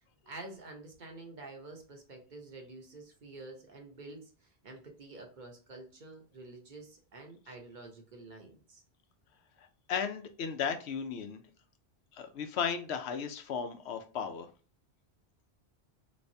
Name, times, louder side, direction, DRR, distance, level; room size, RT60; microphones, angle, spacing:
voice 1, 0.3-8.8, right 2 dB, 50° right, 2 dB, 0.9 m, -48 dB
voice 2, 9.6-11.4 12.1-14.5, left 7 dB, 85° left, 7 dB, 0.9 m, -35 dB
3.3 x 3.1 x 2.6 m, 0.36 s
omnidirectional pair, 1.1 m